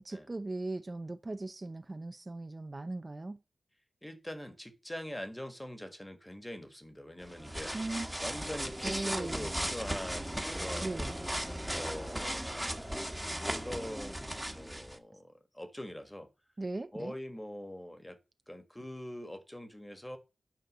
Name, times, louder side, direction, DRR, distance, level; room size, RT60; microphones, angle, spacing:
voice 1, 0.0-3.4 7.7-8.1 8.8-9.5 10.8-11.2 16.6-17.1, right 2 dB, 35° right, 0.5 m, -38 dB
voice 2, 4.0-7.7 8.2-11.0 11.7-12.8 13.4-16.3 16.9-18.2 18.5-20.2, left 1 dB, 10° left, 1.7 m, -43 dB
sound 1, 7.2-15.0, equal, 5° right, 1.3 m, -37 dB
9.3 x 4.4 x 6.6 m
wide cardioid pair, 70°, 0 cm